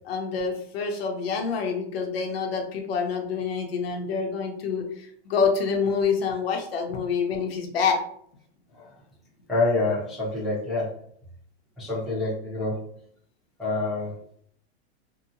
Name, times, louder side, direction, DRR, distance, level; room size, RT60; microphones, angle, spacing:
voice 1, 0.0-8.0, left 5 dB, 65° left, 3 dB, 0.7 m, -27 dB
voice 2, 9.5-11.0 11.8-12.9 13.6-14.1, left 2 dB, ahead, -11 dB, 0.6 m, -27 dB
2.8 x 2.1 x 2.5 m, 0.63 s
supercardioid pair, 165°, 32 cm